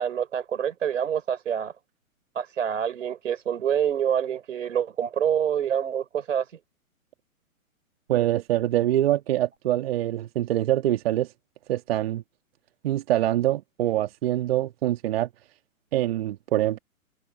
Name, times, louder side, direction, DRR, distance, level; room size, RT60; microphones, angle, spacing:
voice 1, 0.0-1.7 2.4-6.5, right 8 dB, 60° right, 3.9 m, -26 dB
voice 2, 8.1-11.3 11.7-12.2 12.8-15.3 15.9-16.8, right 13 dB, 45° right, 1.8 m, -24 dB
figure-of-eight pair, 120°, 42 cm